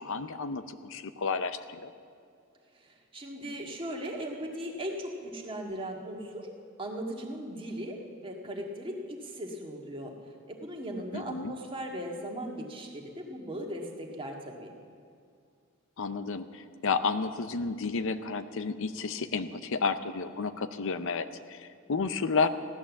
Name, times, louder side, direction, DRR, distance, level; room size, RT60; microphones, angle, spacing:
voice 1, 0.0-1.9 11.1-11.5 16.0-22.5, left 4 dB, 65° left, 11 dB, 0.6 m, -31 dB
voice 2, 2.7-6.5 6.8-8.0 8.2-10.1 10.5-14.7, equal, 25° right, 0 dB, 1.8 m, -38 dB
15.5 x 11.5 x 7.2 m, 2.3 s
head